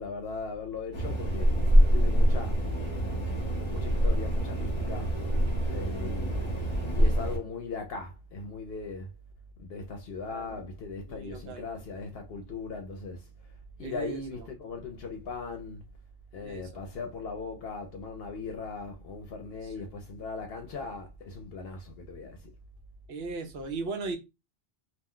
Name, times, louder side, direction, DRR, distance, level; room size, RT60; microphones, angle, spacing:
voice 1, 0.0-1.6 1.9-2.6 3.7-5.2 5.7-9.1 9.6-13.3 13.8-15.8 16.3-22.5, left 4 dB, 70° left, 0.8 m, -39 dB
sound 1, 0.9-7.4, right 1 dB, 30° left, 0.7 m, -25 dB
voice 2, 10.3-10.6 11.1-11.7 13.8-14.5 16.4-16.8 19.6-19.7 23.1-24.2, right 3 dB, 75° right, 0.9 m, -37 dB
2.4 x 2.2 x 3.6 m
omnidirectional pair, 1.1 m